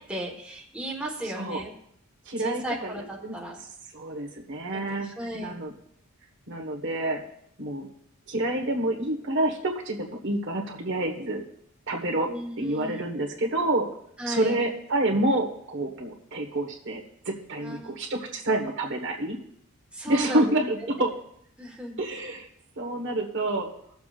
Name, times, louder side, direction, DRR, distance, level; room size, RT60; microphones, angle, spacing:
voice 1, 0.1-1.7 2.4-3.6 4.7-5.5 12.3-12.9 14.2-14.6 17.6-18.0 19.9-20.6 21.6-22.0, right 1 dB, 5° right, -2 dB, 1.4 m, -35 dB
voice 2, 1.2-1.6 2.3-3.4 3.9-5.7 6.5-7.2 7.6-7.9 8.3-11.4 11.9-12.3 12.6-13.9 14.3-19.4 20.0-21.1 22.0-22.5 22.8-23.7, right 1 dB, 55° right, 2 dB, 1.4 m, -28 dB
21.0 x 7.1 x 2.5 m, 0.69 s
head